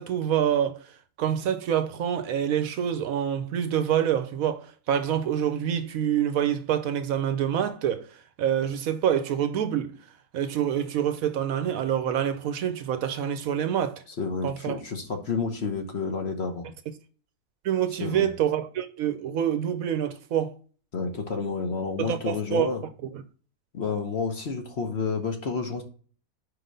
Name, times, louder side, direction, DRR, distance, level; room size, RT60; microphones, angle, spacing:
voice 1, 0.0-10.0 10.3-14.0 14.4-14.8 17.6-20.5 22.0-22.7 23.0-23.2, right 9 dB, 70° right, 0.9 m, -26 dB
voice 2, 14.2-16.6 18.0-18.3 20.9-22.8 23.7-25.8, left 4 dB, 50° left, 1.0 m, -30 dB
4.9 x 3.9 x 5.1 m
omnidirectional pair, 1.7 m